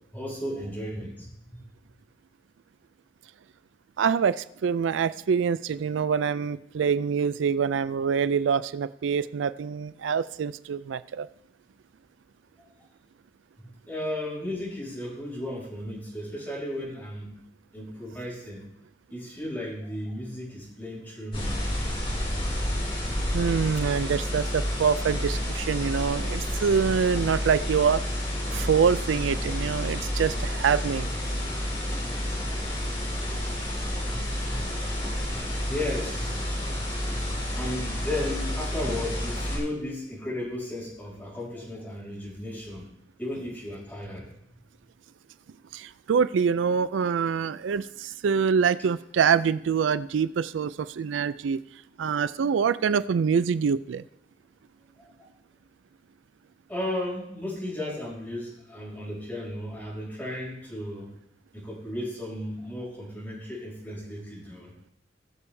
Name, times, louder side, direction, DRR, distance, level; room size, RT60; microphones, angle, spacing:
voice 1, 0.1-1.5 13.6-17.3 17.7-18.6 19.1-21.6 34.1-34.3 35.3-36.5 37.6-42.8 43.2-44.3 56.7-61.1 61.5-64.7, left 1 dB, 10° left, -6 dB, 5.0 m, -35 dB
voice 2, 4.0-11.3 23.3-28.0 28.5-31.1 45.7-51.6 52.0-54.0, right 6 dB, 85° right, 15 dB, 0.4 m, -25 dB
sound 1, 21.3-39.6, left 1 dB, 30° left, 4.9 m, -30 dB
20.0 x 6.9 x 3.4 m, 0.77 s
head